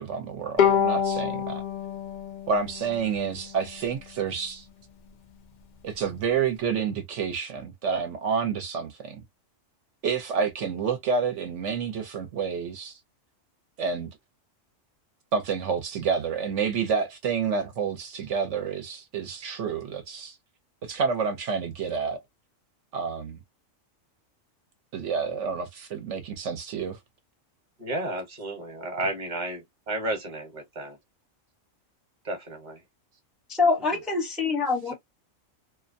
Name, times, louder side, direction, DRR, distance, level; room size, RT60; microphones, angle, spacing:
voice 1, 0.0-1.6 2.5-4.7 5.8-9.2 10.0-13.0 13.8-14.2 15.3-20.4 20.8-22.2 22.9-23.4 24.9-27.0, right 6 dB, 65° right, 0.9 m, -29 dB
Bowed string instrument, 0.6-3.9, left 8 dB, 75° left, 0.4 m, -27 dB
voice 2, 27.8-31.0 32.2-32.8, right 1 dB, 40° right, 1.0 m, -32 dB
voice 3, 33.6-34.9, left 4 dB, ahead, 0.5 m, -24 dB
2.5 x 2.1 x 2.5 m
omnidirectional pair, 1.4 m